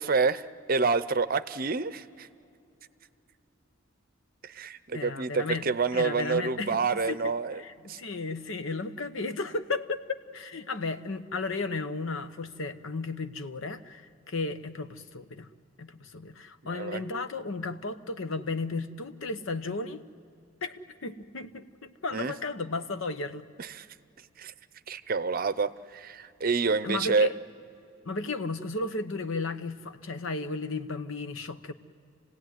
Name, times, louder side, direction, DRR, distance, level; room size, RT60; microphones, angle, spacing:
voice 1, 0.0-2.3 4.4-7.6 7.9-8.0 16.6-17.0 22.1-22.3 23.6-23.9 24.4-24.5 24.9-27.3, right 4 dB, 45° right, 14 dB, 0.7 m, -28 dB
voice 2, 4.9-5.7 5.9-6.8 7.1-7.2 7.6-15.5 15.8-20.0 20.6-23.5 26.8-27.3 28.0-31.7, left 3 dB, 75° left, 10 dB, 1.0 m, -34 dB
28.0 x 17.5 x 9.4 m, 2.7 s
head